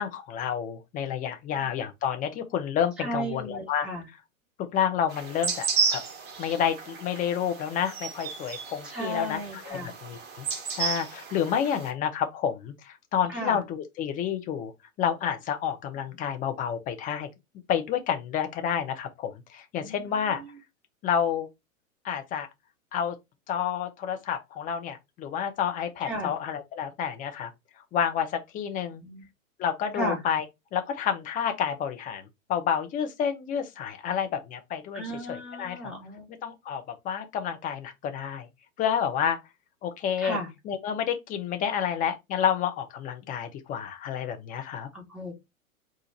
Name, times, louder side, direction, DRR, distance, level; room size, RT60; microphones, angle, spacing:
voice 1, 0.0-3.9 4.7-6.0 6.4-14.7 15.0-17.3 17.7-20.4 21.0-21.5 22.0-22.5 22.9-23.1 23.5-27.5 27.9-29.0 29.6-30.4 30.7-35.0 35.3-35.9 36.4-38.5 38.8-39.4 39.8-40.4 40.7-44.9, left 8 dB, 20° left, 0.7 m, -29 dB
voice 2, 3.0-4.1 8.8-9.9 13.3-13.6 19.8-20.4 26.0-26.3 29.0-29.3 29.9-30.2 34.9-36.3 40.2-40.5 44.9-45.3, right 1 dB, ahead, 1.5 m, -35 dB
sound 1, 5.1-11.9, right 5 dB, 25° right, 1.1 m, -33 dB
4.3 x 2.5 x 4.1 m
figure-of-eight pair, 110°, 42 cm